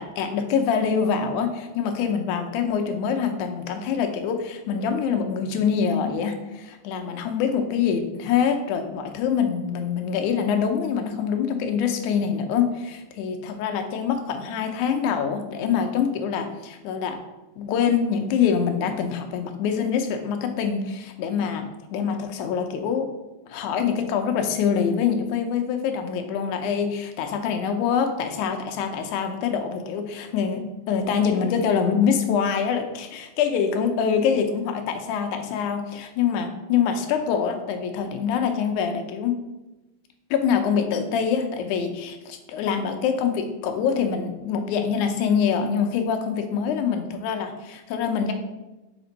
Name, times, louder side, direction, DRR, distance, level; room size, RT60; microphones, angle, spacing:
voice 1, 0.0-17.2 17.6-23.1 23.5-39.4 40.3-48.3, left 7 dB, 75° left, 6 dB, 2.0 m, -25 dB
6.1 x 4.3 x 4.0 m, 1.1 s
omnidirectional pair, 3.6 m